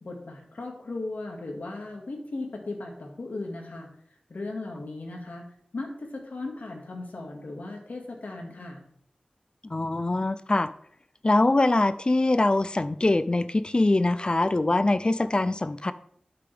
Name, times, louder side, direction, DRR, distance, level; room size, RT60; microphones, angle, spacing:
voice 1, 0.0-3.9 4.3-5.5 5.7-8.8, left 2 dB, 80° left, 1 dB, 2.2 m, -37 dB
voice 2, 9.7-10.7 11.2-15.9, left 2 dB, 35° left, 13 dB, 0.5 m, -23 dB
11.5 x 6.8 x 3.6 m, 0.67 s
wide cardioid pair, 75°, 3 cm